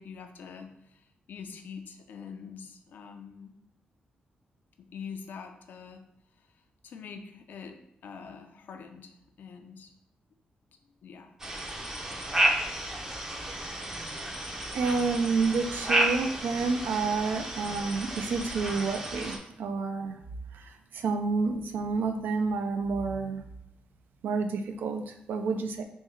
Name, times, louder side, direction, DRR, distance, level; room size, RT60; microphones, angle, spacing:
voice 1, 0.0-3.6 4.9-6.0 6.4-6.5 6.8-9.9 11.0-11.3 11.7-11.9 23.9-24.1, left 6 dB, 75° left, 6 dB, 0.4 m, -45 dB
sound 1, 11.4-19.4, right 1 dB, 20° right, 0.5 m, -31 dB
voice 2, 14.7-20.2 20.5-23.4 24.2-25.8, right 4 dB, 90° right, 7 dB, 0.4 m, -29 dB
3.5 x 2.6 x 3.1 m, 0.80 s
cardioid pair, 110°, 3 cm